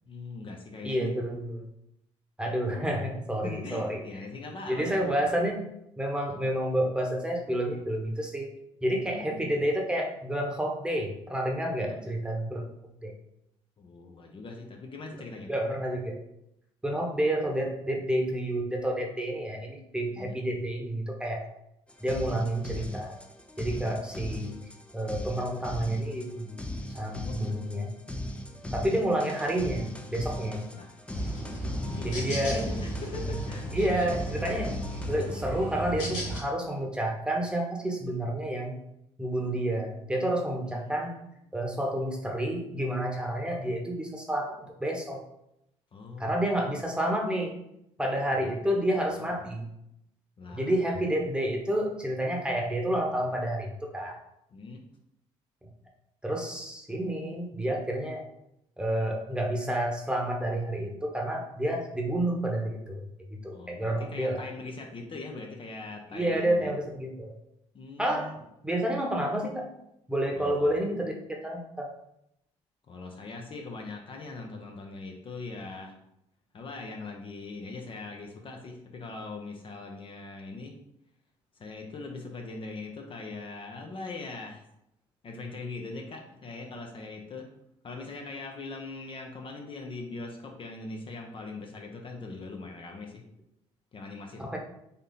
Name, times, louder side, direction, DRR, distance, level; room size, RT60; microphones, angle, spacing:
voice 1, 0.1-1.1 3.4-5.3 9.0-9.5 11.8-12.1 13.8-15.5 20.2-20.3 27.2-27.8 28.6-29.2 30.7-30.9 31.9-33.7 40.6-41.0 45.9-46.4 49.4-49.5 50.4-50.7 54.5-54.8 63.5-66.7 67.7-68.3 70.3-70.8 72.9-75.9 76.5-80.8 81.6-84.6 85.2-87.5 87.8-93.2 93.9-94.4, left 3 dB, 45° left, 2 dB, 0.7 m, -41 dB
voice 2, 0.8-1.6 2.4-4.0 4.7-5.6 6.0-8.5 8.8-12.7 13.0-13.1 15.5-16.2 16.8-21.4 22.0-23.1 23.6-24.5 24.9-26.6 26.9-27.9 28.7-30.6 32.0-32.6 33.7-34.7 35.1-38.7 39.2-41.1 41.5-45.2 46.2-47.5 48.0-49.7 50.5-54.2 56.2-58.2 58.8-63.0 63.3-64.4 66.1-67.3 68.0-68.3 68.6-69.7 70.1-71.9 94.4-94.6, right 1 dB, 5° right, 0 dB, 1.0 m, -29 dB
sound 1, 21.9-35.4, left 1 dB, 10° left, 0.5 m, -39 dB
sound 2, 31.1-36.4, equal, 90° left, 1.4 m, -35 dB
3.4 x 2.7 x 4.0 m, 0.80 s
supercardioid pair, 70°, 13 cm